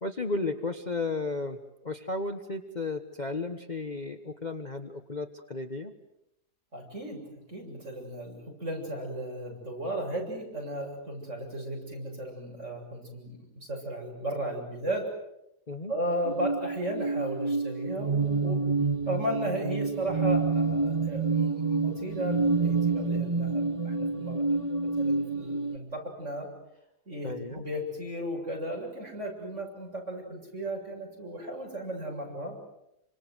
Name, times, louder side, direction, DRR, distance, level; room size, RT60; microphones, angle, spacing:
voice 1, 0.0-5.9 15.7-15.9 27.2-27.6, left 3 dB, 30° left, 5 dB, 1.4 m, -34 dB
voice 2, 6.7-7.2 7.5-15.1 15.9-18.6 19.0-24.4 25.0-26.5 27.1-32.6, right 1 dB, 45° right, 0 dB, 7.8 m, -35 dB
sound 1, 16.3-25.8, right 4 dB, 20° right, 1.9 m, -28 dB
28.0 x 25.5 x 8.0 m, 0.84 s
omnidirectional pair, 1.7 m